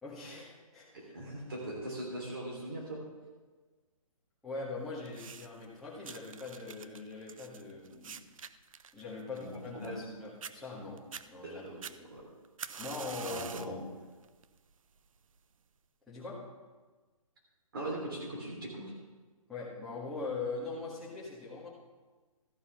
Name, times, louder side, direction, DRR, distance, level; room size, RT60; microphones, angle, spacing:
voice 1, 0.0-1.1 4.4-8.2 8.9-12.1 12.8-13.8 16.1-16.4 19.5-21.7, left 3 dB, ahead, -10 dB, 1.5 m, -42 dB
voice 2, 1.1-3.0 9.3-9.5 9.7-10.1 11.4-11.7 12.1-12.2 13.2-13.7 17.7-18.8, right 1 dB, 40° right, -3 dB, 2.9 m, -40 dB
sound 1, 5.1-5.7 6.0-10.1 10.4-10.5 11.0-11.3 11.8-13.8 14.2-14.6 15.4-15.5, right 7 dB, 65° right, 0.5 m, -46 dB
13.5 x 5.6 x 5.7 m, 1.3 s
hypercardioid pair, 175°, 18 cm